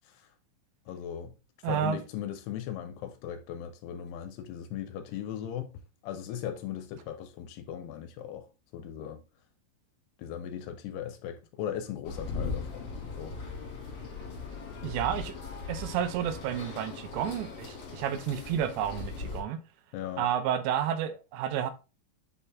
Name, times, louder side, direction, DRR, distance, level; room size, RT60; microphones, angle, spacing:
voice 1, 0.9-1.3 1.7-5.7 6.0-8.5 8.7-9.2 10.2-13.3 19.9-20.3, left 10 dB, 80° left, 2.6 m, -38 dB
voice 2, 1.6-2.0 14.8-15.4 15.7-19.6 20.2-21.7, right 9 dB, 85° right, 3.1 m, -31 dB
sound 1, 12.0-19.4, left 4 dB, 40° left, 2.9 m, -39 dB
7.9 x 4.2 x 3.5 m
omnidirectional pair, 5.0 m